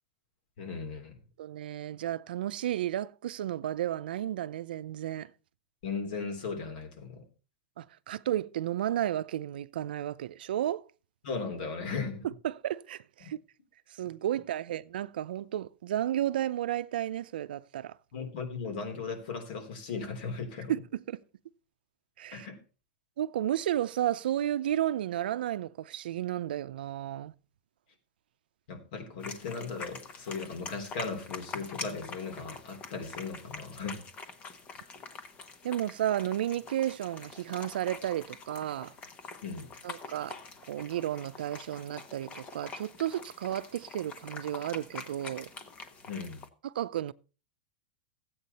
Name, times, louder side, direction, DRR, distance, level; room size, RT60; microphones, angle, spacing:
voice 1, 0.6-1.2 5.8-7.2 11.2-12.3 18.1-20.7 22.3-22.6 28.7-34.0 39.4-39.7 46.1-46.4, left 4 dB, 70° left, 3.1 m, -37 dB
voice 2, 1.4-5.3 7.8-10.8 12.2-13.4 13.9-18.0 20.7-21.2 22.2-22.5 23.2-27.3 35.6-38.9 39.8-40.4 40.7-45.5 46.6-47.1, right 12 dB, 90° right, 0.6 m, -33 dB
sound 1, 29.2-46.5, left 4 dB, 25° left, 1.2 m, -45 dB
13.5 x 8.6 x 4.2 m
supercardioid pair, 145°, 5 cm